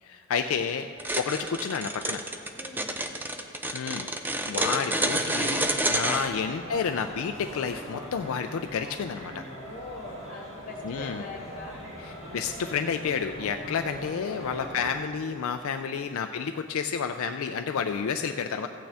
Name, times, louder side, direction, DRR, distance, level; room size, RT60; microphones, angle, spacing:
voice 1, 0.0-2.2 3.7-9.4 10.8-11.2 12.3-18.7, left 6 dB, 75° left, 6 dB, 0.4 m, -30 dB
sound 1, 1.0-6.3, right 1 dB, 10° right, 0.4 m, -28 dB
voice 2, 2.5-3.0 9.4-11.8 13.7-14.9 15.7-16.1, left 2 dB, 40° left, -1 dB, 1.8 m, -43 dB
sound 2, 5.4-14.9, equal, 60° right, 2.7 m, -42 dB
15.0 x 8.7 x 3.4 m, 2.7 s
head